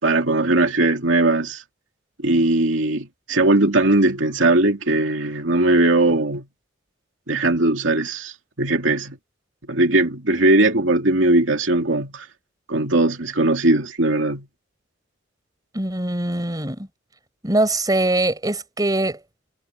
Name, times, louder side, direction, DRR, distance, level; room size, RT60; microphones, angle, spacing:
voice 1, 0.0-1.6 2.2-6.5 7.3-9.2 9.7-12.3 12.7-14.5, right 2 dB, 90° right, 2.5 m, -19 dB
voice 2, 15.7-16.9 17.4-19.2, right 2 dB, 20° right, 5.0 m, -22 dB
head